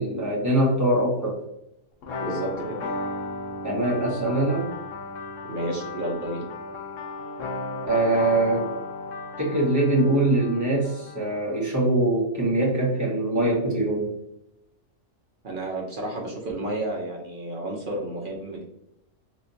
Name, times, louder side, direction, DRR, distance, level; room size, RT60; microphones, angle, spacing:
voice 1, 0.0-1.4 3.6-4.7 7.9-8.7 9.4-14.1, right 2 dB, 15° right, -4 dB, 0.9 m, -23 dB
sound 1, 2.0-11.6, left 3 dB, 75° left, 1.0 m, -34 dB
voice 2, 2.2-2.8 5.5-6.4 15.4-18.6, right 1 dB, 50° right, -2 dB, 0.8 m, -31 dB
3.3 x 2.9 x 2.6 m, 0.83 s
omnidirectional pair, 1.3 m